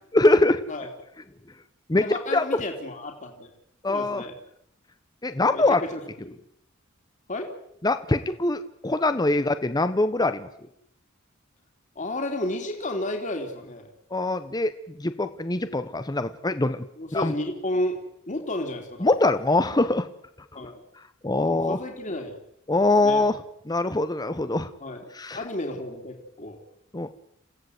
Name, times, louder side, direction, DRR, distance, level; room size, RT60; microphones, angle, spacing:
voice 1, 0.1-0.6 1.9-2.0 2.3-2.6 3.8-4.2 5.2-5.8 7.8-10.5 14.1-14.7 15.0-16.8 17.1-17.3 19.0-20.1 21.2-21.8 22.7-23.3 23.7-24.7 25.1-25.4 26.9-27.1, left 2 dB, 20° left, 11 dB, 0.9 m, -23 dB
voice 2, 2.0-3.5 3.9-4.4 5.5-6.3 7.3-7.5 9.4-9.5 11.9-13.9 17.0-18.0 18.3-19.1 20.5-20.8 21.4-22.4 23.0-23.3 24.8-25.0 25.3-26.6, left 1 dB, 40° left, 2 dB, 3.1 m, -32 dB
28.5 x 16.5 x 8.1 m, 0.75 s
head